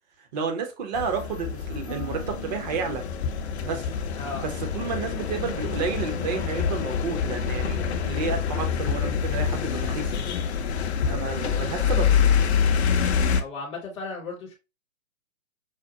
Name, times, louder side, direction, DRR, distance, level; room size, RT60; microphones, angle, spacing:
voice 1, 0.3-3.0 3.6-3.8 4.4-10.2 11.0-12.1, right 5 dB, 35° right, 0.8 m, -31 dB
sound 1, 0.9-13.4, left 7 dB, 55° left, 0.6 m, -26 dB
Harp, 1.9-6.0 6.3-6.8 7.3-7.7, equal, 65° right, 2.1 m, -47 dB
voice 2, 13.4-14.5, left 3 dB, 10° left, 0.7 m, -36 dB
5.0 x 2.1 x 2.7 m
figure-of-eight pair, 125°, 39 cm